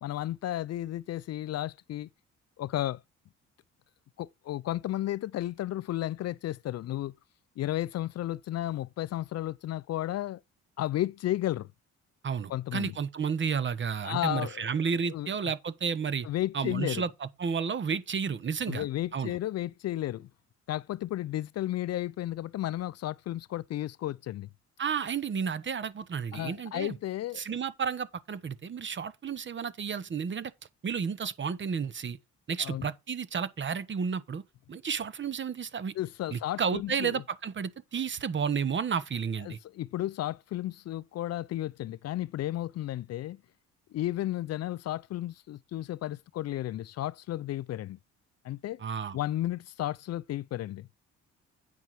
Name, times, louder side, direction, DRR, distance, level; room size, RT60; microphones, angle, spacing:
voice 1, 0.0-2.1 2.6-3.0 4.2-7.1 7.6-10.4 10.8-11.7 12.5-12.9 14.0-14.7 15.1-15.3 16.2-17.0 18.7-20.3 20.7-24.5 26.3-27.4 32.6-32.9 36.0-37.2 39.4-43.4 43.9-48.0 48.4-48.8 49.1-50.9, left 14 dB, 55° left, 0.4 m, -33 dB
voice 2, 12.2-16.3 16.5-18.8 19.1-19.4 24.8-27.0 27.4-30.5 30.8-32.2 32.5-34.4 34.7-35.9 36.3-39.6 48.8-49.2, right 6 dB, 40° right, 1.0 m, -32 dB
9.4 x 5.6 x 4.7 m
cardioid pair, 90°, 30 cm